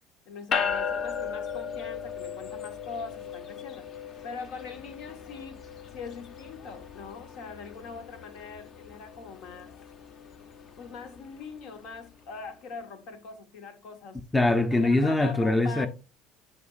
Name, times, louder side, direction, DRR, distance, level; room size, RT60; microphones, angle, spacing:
voice 1, 0.2-3.9 4.2-5.6 5.9-9.7 10.8-14.2 14.7-15.9, left 4 dB, 75° left, 1.3 m, -42 dB
sound 1, 0.5-12.1, left 6 dB, 45° left, 0.8 m, -37 dB
voice 2, 14.3-15.9, left 2 dB, 10° left, 0.5 m, -23 dB
9.9 x 4.3 x 2.5 m
cardioid pair, 120°, 0 cm